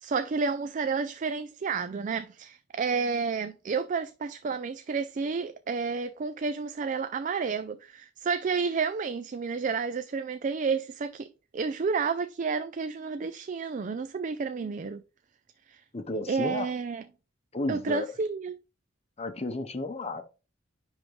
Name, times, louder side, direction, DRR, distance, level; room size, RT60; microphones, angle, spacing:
voice 1, 0.0-11.3 11.5-15.0 15.7-15.8 16.3-17.0 17.7-18.5, right 5 dB, 40° right, 0.3 m, -30 dB
voice 2, 15.9-16.7 17.5-18.1 19.2-20.2, left 2 dB, 30° left, 0.8 m, -32 dB
10.0 x 3.6 x 3.1 m
head